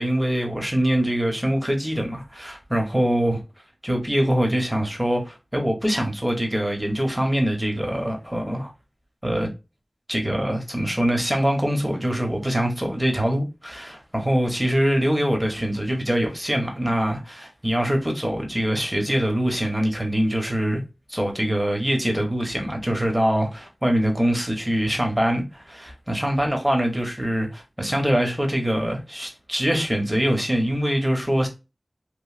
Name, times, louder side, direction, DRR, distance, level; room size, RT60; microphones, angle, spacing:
voice 1, 0.0-3.4 3.8-8.7 9.2-9.5 10.1-20.8 21.1-31.5, equal, 15° right, 0.9 m, -23 dB
3.1 x 2.6 x 2.4 m
wide cardioid pair, 55°, 0 cm